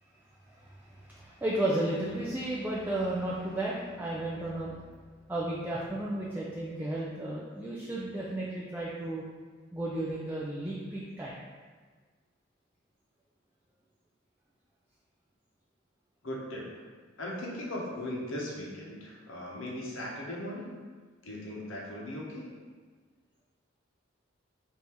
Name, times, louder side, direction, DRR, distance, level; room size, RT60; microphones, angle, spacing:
voice 1, 0.5-4.9 5.3-9.2 9.7-11.3, right 1 dB, 10° right, -6 dB, 0.4 m, -33 dB
voice 2, 16.2-16.7 17.2-20.7 21.2-22.5, left 1 dB, 70° left, -3 dB, 0.9 m, -38 dB
3.6 x 2.7 x 4.3 m, 1.5 s
head